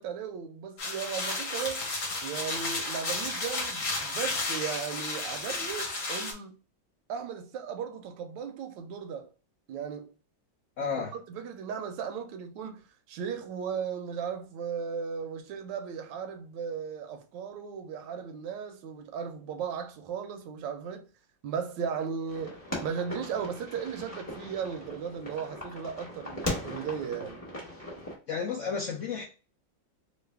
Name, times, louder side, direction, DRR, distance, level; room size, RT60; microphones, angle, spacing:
voice 1, 0.0-1.9 2.2-6.6 7.1-9.3 9.7-10.1 10.8-21.1 21.4-27.4, right 7 dB, 80° right, 1.2 m, -36 dB
sound 1, 0.8-6.3, left 3 dB, 50° left, 1.2 m, -33 dB
voice 2, 10.8-11.1 28.3-29.2, left 5 dB, 85° left, 0.6 m, -32 dB
sound 2, 22.3-28.1, left 1 dB, 10° left, 1.0 m, -39 dB
3.2 x 2.5 x 3.2 m
omnidirectional pair, 2.0 m